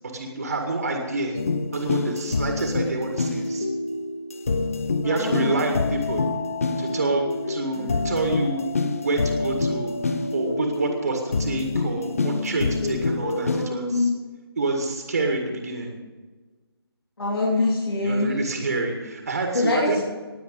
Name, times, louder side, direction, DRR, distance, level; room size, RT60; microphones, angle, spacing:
voice 1, 0.1-1.4 1.7-3.7 5.0-6.3 6.8-8.8 9.0-9.9 10.3-14.1 14.6-16.0 18.0-20.0, right 3 dB, 40° right, 3 dB, 2.0 m, -27 dB
sound 1, 1.4-13.7, left 3 dB, 35° left, 0.8 m, -27 dB
voice 2, 5.0-5.6 7.7-8.0 13.4-14.1 17.2-18.3 19.5-20.0, left 2 dB, 70° left, -4 dB, 3.4 m, -24 dB
19.5 x 7.6 x 5.3 m, 1.3 s
figure-of-eight pair, 175°, 13 cm